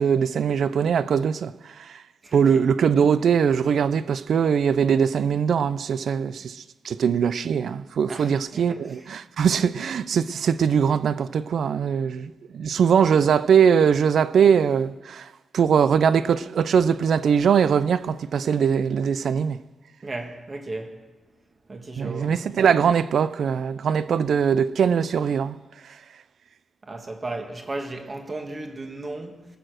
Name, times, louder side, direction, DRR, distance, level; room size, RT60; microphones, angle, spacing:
voice 1, 0.0-2.0 2.3-15.3 15.5-19.6 22.0-25.6, right 7 dB, 65° right, 0.4 m, -21 dB
voice 2, 8.1-8.8 20.0-21.0 21.7-22.3 26.8-29.5, right 2 dB, 25° right, 1.4 m, -35 dB
20.5 x 6.8 x 6.4 m
wide cardioid pair, 165°, 0 cm